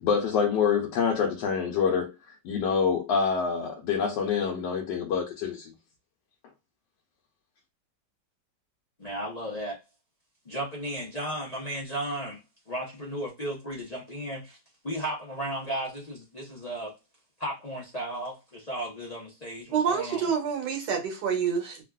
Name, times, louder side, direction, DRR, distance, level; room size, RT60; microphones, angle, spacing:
voice 1, 0.0-5.7, left 6 dB, 80° left, 1.3 m, -26 dB
voice 2, 9.0-9.8 10.5-12.4 12.7-14.6 14.8-16.9 17.4-20.2, right 1 dB, 45° left, 0.5 m, -34 dB
voice 3, 19.7-21.8, right 7 dB, 70° right, 1.4 m, -27 dB
3.4 x 2.3 x 2.2 m
omnidirectional pair, 1.9 m